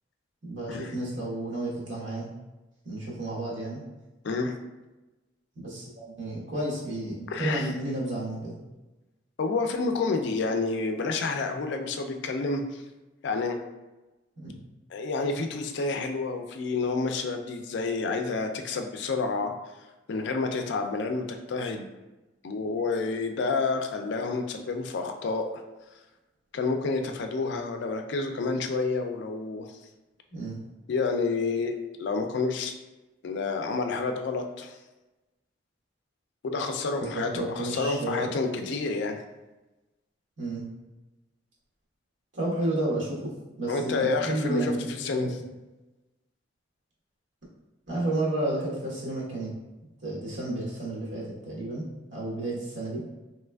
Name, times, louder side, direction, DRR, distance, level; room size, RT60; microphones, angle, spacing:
voice 1, 0.4-2.3 2.8-3.8 5.5-8.6 14.4-14.5 30.3-30.5 37.0-38.2 38.5-38.6 40.4-40.6 42.3-43.3 43.6-45.4 47.9-49.5 50.0-51.8 52.1-53.0, right 1 dB, 80° right, -6 dB, 1.2 m, -31 dB
voice 2, 4.2-4.6 7.3-7.7 9.4-12.8 13.2-13.6 14.9-19.5 20.1-21.9 22.4-25.4 26.5-29.8 30.9-31.7 32.0-32.7 33.2-34.8 36.4-39.2 43.7-45.3, left 3 dB, 65° left, 5 dB, 0.4 m, -29 dB
3.3 x 3.0 x 2.2 m, 1.1 s
head